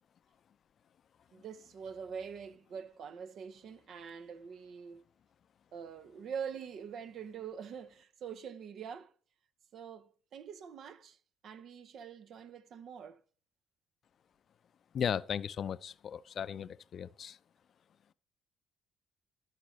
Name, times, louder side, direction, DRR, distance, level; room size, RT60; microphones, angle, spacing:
voice 1, 1.3-5.0 5.7-9.1 9.7-11.2 11.4-13.2, right 7 dB, 60° right, 0.8 m, -44 dB
voice 2, 14.9-17.4, left 8 dB, 55° left, 0.5 m, -36 dB
13.5 x 6.0 x 3.2 m
hypercardioid pair, 55°, 0 cm